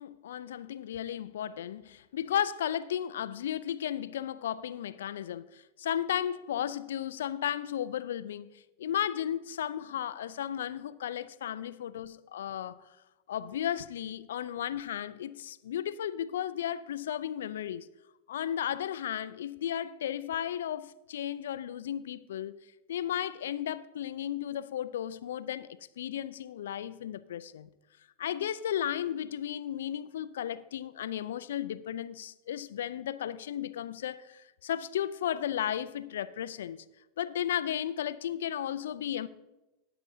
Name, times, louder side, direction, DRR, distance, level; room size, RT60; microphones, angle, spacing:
voice 1, 0.0-8.5 8.8-12.9 13.3-17.9 18.3-22.6 22.9-25.7 26.0-27.7 28.2-36.8 37.2-39.3, left 10 dB, 75° left, 0.4 m, -34 dB
19.5 x 6.8 x 2.7 m
hypercardioid pair, 85°, 0 cm